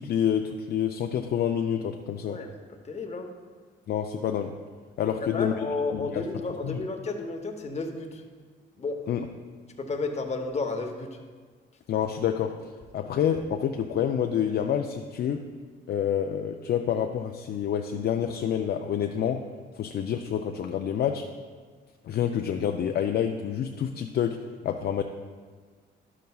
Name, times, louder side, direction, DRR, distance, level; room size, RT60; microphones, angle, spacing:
voice 1, 0.0-2.4 3.9-4.5 5.0-5.7 5.9-6.8 9.1-9.3 11.9-12.5 12.9-15.4 15.9-19.4 19.8-21.3 22.0-24.4 24.6-25.0, left 9 dB, 55° left, 4 dB, 0.4 m, -28 dB
voice 2, 2.8-3.3 5.1-8.2 8.8-9.0 9.8-11.2, left 3 dB, 35° left, 4 dB, 0.9 m, -32 dB
10.5 x 6.6 x 2.3 m, 1.5 s
cardioid pair, 90°, 20 cm